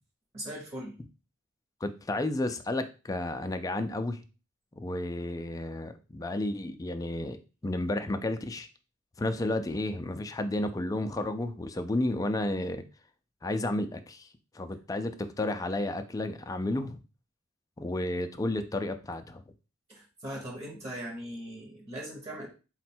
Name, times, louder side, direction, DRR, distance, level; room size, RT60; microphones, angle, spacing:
voice 1, 0.3-0.9 19.9-22.5, equal, 30° right, 0 dB, 0.9 m, -39 dB
voice 2, 1.8-4.2 4.8-8.7 9.2-12.8 13.4-14.3 14.5-17.0 17.8-19.4, left 2 dB, 15° left, 8 dB, 0.3 m, -32 dB
4.2 x 2.2 x 4.3 m, 0.32 s
head